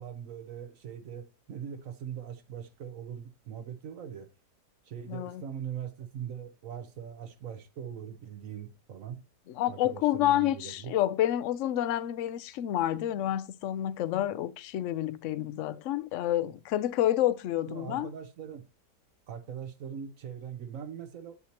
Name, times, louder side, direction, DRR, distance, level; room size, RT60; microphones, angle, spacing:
voice 1, 0.0-4.3 4.8-9.2 9.7-10.9 17.7-18.7 19.3-21.4, right 8 dB, 60° right, 1.0 m, -41 dB
voice 2, 5.1-5.4 9.5-18.1, left 12 dB, 70° left, 0.7 m, -29 dB
8.3 x 7.0 x 2.9 m
omnidirectional pair, 1.8 m